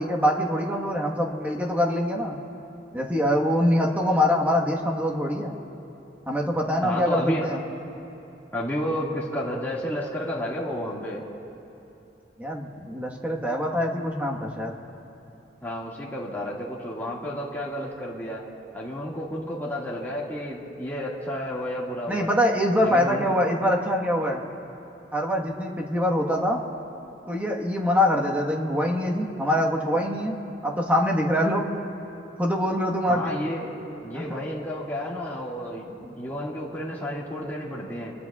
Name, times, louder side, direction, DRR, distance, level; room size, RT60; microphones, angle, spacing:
voice 1, 0.0-2.4 2.9-5.6 6.3-7.6 12.4-14.7 22.1-24.4 25.1-26.6 27.3-30.3 30.6-31.7 32.4-33.4 34.1-34.2 36.0-36.1, equal, 10° right, 0 dB, 1.3 m, -24 dB
voice 2, 6.8-7.5 8.5-11.3 15.6-18.4 18.7-22.3 22.8-23.2 33.1-33.7 34.0-35.9 36.2-38.1, equal, 10° left, -5 dB, 1.9 m, -31 dB
26.5 x 21.0 x 2.4 m, 3.0 s
head